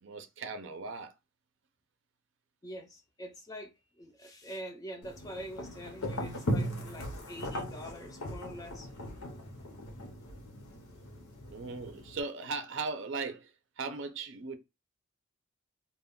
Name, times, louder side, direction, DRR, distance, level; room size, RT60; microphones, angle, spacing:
voice 1, 0.0-1.1 11.5-14.6, right 4 dB, 55° right, 0.4 m, -38 dB
voice 2, 2.6-8.9, equal, 15° left, 0.3 m, -45 dB
sound 1, 5.0-12.2, equal, 80° left, 0.7 m, -38 dB
2.2 x 2.1 x 3.5 m
head